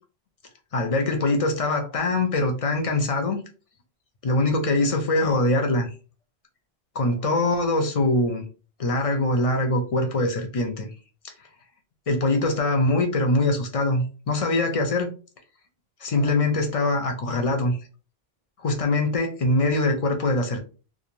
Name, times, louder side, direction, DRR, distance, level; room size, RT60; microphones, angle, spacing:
voice 1, 0.7-3.4 4.2-5.9 7.0-8.4 8.8-10.9 12.1-15.1 16.0-17.8 18.6-20.6, left 2 dB, 45° left, 0.5 m, -23 dB
2.5 x 2.1 x 3.0 m
omnidirectional pair, 1.0 m